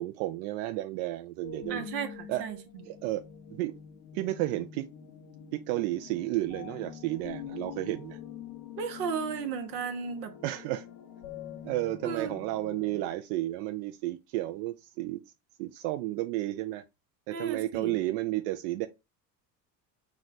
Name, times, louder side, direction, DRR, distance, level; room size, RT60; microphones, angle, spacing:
voice 1, 0.0-1.9 2.3-2.4 2.9-3.2 3.5-3.7 4.1-4.9 5.5-8.2 10.4-10.9 11.6-15.2 15.6-16.8 17.3-18.9, right 16 dB, 65° right, 0.5 m, -32 dB
sound 1, 1.4-13.1, left 8 dB, 85° left, 0.7 m, -45 dB
voice 2, 1.7-2.6 8.8-10.3 12.0-12.4 17.3-18.0, right 6 dB, 80° right, 1.0 m, -34 dB
4.8 x 2.1 x 3.9 m
hypercardioid pair, 70°, 50 cm